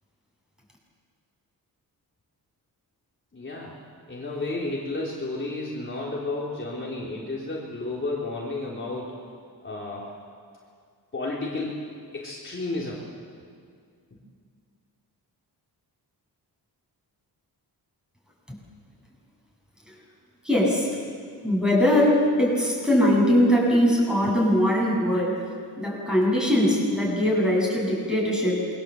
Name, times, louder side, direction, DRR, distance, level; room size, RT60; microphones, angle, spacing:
voice 1, 3.3-3.8 4.1-9.1 9.6-10.1 11.1-11.8 12.1-13.0, left 2 dB, 30° left, -5 dB, 3.8 m, -32 dB
voice 2, 20.4-20.9 21.4-25.5 25.8-28.6, equal, ahead, -3 dB, 8.0 m, -21 dB
27.5 x 23.0 x 7.9 m, 2.2 s
wide cardioid pair, 135°, 39 cm